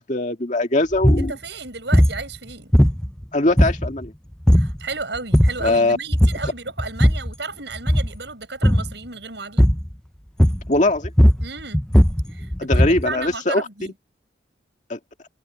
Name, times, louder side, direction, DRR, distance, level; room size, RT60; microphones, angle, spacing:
voice 1, 0.0-1.4 3.3-4.1 5.6-6.0 10.7-11.1 12.6-13.7 14.9-15.0, left 2 dB, 40° left, 2.1 m, -21 dB
sound 1, 0.9-1.3 1.9-2.2 2.7-3.2 3.6-4.1 4.5-4.8 5.2-5.7 6.1-6.5 6.8-7.3 7.8-8.2 8.6-8.9 9.6-9.9 10.4-10.8 11.0-13.1, equal, 5° left, 0.5 m, -16 dB
voice 2, 1.2-2.7 4.5-9.6 11.4-11.8 12.3-12.5 12.7-13.9, right 4 dB, 70° right, 8.0 m, -33 dB
head